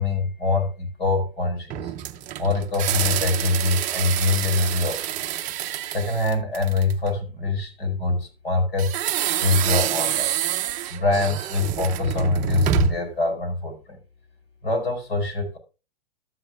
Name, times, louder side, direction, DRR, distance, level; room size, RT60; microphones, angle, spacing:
voice 1, 0.0-1.9 2.4-5.1 5.9-9.0 9.4-10.3 10.9-14.0 14.6-15.6, left 3 dB, 75° left, 4 dB, 4.7 m, -24 dB
sound 1, 1.7-7.1 8.8-13.1, right 12 dB, 25° right, 0.5 m, -27 dB
13.5 x 8.6 x 2.3 m, 0.30 s
hypercardioid pair, 115°, 31 cm